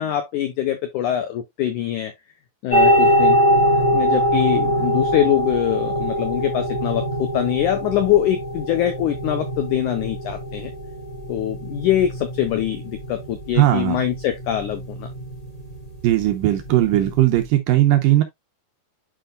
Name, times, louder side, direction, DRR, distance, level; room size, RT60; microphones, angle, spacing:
voice 1, 0.0-2.1 2.6-3.4 3.9-10.7 11.3-15.1, left 11 dB, 90° left, 1.7 m, -23 dB
sound 1, 2.7-17.5, equal, 30° left, 0.6 m, -23 dB
voice 2, 13.6-14.0 16.0-18.2, right 14 dB, 75° right, 2.2 m, -17 dB
10.5 x 4.6 x 2.2 m
omnidirectional pair, 4.6 m